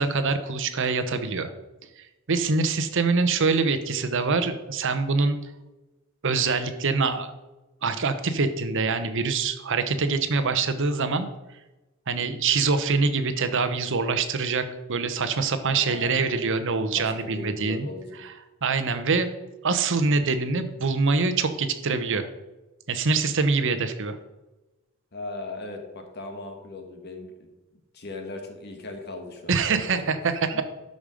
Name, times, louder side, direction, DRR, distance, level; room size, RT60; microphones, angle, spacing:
voice 1, 0.0-1.5 2.3-5.4 6.2-7.3 7.8-11.3 12.1-17.9 18.2-18.3 18.6-19.3 19.6-22.3 22.9-24.2 29.5-30.6, right 4 dB, 60° right, 10 dB, 0.9 m, -24 dB
voice 2, 15.7-16.4 16.9-18.2 25.1-27.5 27.9-29.9 30.5-30.6, left 2 dB, 50° left, 4 dB, 1.4 m, -38 dB
12.5 x 5.3 x 5.1 m, 1.1 s
head